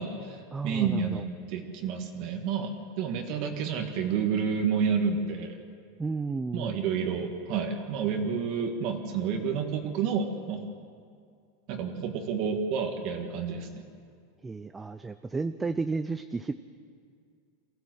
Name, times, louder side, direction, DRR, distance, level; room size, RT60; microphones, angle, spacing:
voice 1, 0.0-0.4 0.6-5.6 6.5-10.7 11.7-13.8, right 6 dB, 45° right, 4 dB, 1.7 m, -30 dB
voice 2, 0.5-1.2 6.0-6.8 14.4-16.5, right 4 dB, 10° right, 10 dB, 0.4 m, -32 dB
23.5 x 15.0 x 7.8 m, 2.2 s
supercardioid pair, 160°, 0 cm